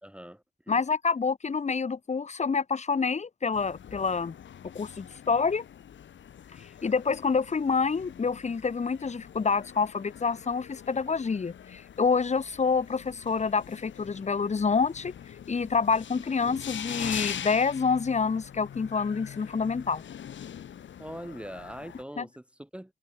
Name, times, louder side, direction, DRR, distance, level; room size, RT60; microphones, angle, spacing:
voice 1, 0.0-0.8 21.0-23.0, equal, 5° right, 1.7 m, -42 dB
voice 2, 0.7-4.4 4.7-5.6 6.8-15.1 15.5-20.0 22.2-22.3, left 5 dB, 35° left, 1.5 m, -27 dB
sound 1, 3.5-22.0, left 9 dB, 65° left, 2.0 m, -43 dB
cardioid pair, 85°, 21 cm